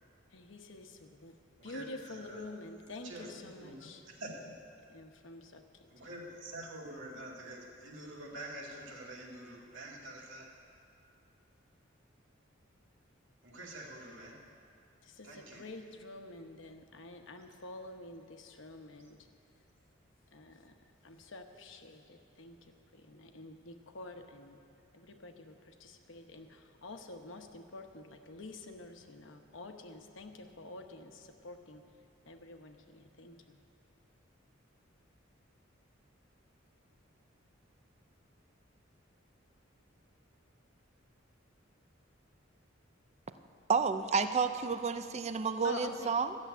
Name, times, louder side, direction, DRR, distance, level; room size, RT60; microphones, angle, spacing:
voice 1, 0.3-1.3 1.6-4.0 4.9-5.6 15.2-15.3 15.6-19.2 20.3-20.7 21.0-22.6 23.0-24.6 24.9-31.8 32.3-33.6 45.6-46.1, left 2 dB, 70° left, 5 dB, 1.0 m, -48 dB
voice 2, 1.6-2.7 2.9-4.6 5.9-10.5 13.4-14.4 15.2-15.7, right 1 dB, 75° right, -2 dB, 2.2 m, -47 dB
voice 3, 43.7-46.4, right 5 dB, 35° right, 10 dB, 0.5 m, -30 dB
13.5 x 7.3 x 9.3 m, 2.5 s
head